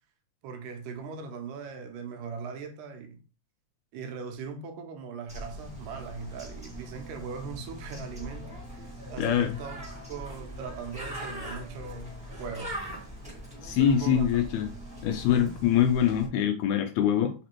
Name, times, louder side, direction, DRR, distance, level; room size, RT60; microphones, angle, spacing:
voice 1, 0.4-3.2 3.9-9.8 10.1-12.1 12.4-12.7 13.8-14.3, right 5 dB, 85° right, 2.3 m, -39 dB
Bird, 5.3-16.3, equal, 5° right, 0.5 m, -41 dB
voice 2, 9.2-9.6 13.6-14.7 15.0-17.3, left 9 dB, 80° left, 1.8 m, -24 dB
5.0 x 3.4 x 2.9 m
omnidirectional pair, 3.7 m